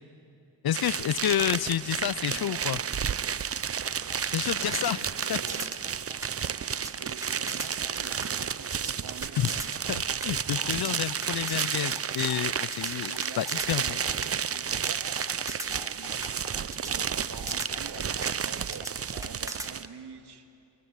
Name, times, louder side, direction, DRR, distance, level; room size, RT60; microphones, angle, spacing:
voice 1, 0.6-2.8 4.3-5.0 5.3-5.4 9.4-9.5 9.9-14.0, left 11 dB, 55° left, 19 dB, 0.6 m, -29 dB
sound 1, 0.7-19.9, right 7 dB, 30° right, 0.6 m, -31 dB
voice 2, 2.2-3.0 4.5-6.2 6.9-9.7 10.3-11.1 13.0-19.0 19.2-20.5, right 5 dB, 60° right, 5 dB, 2.2 m, -47 dB
sound 2, 3.7-19.7, right 1 dB, 5° right, 1.9 m, -41 dB
sound 3, 10.4-19.3, left 11 dB, 75° left, 1.0 m, -47 dB
24.0 x 19.0 x 9.6 m, 2.7 s
cardioid pair, 70°, 45 cm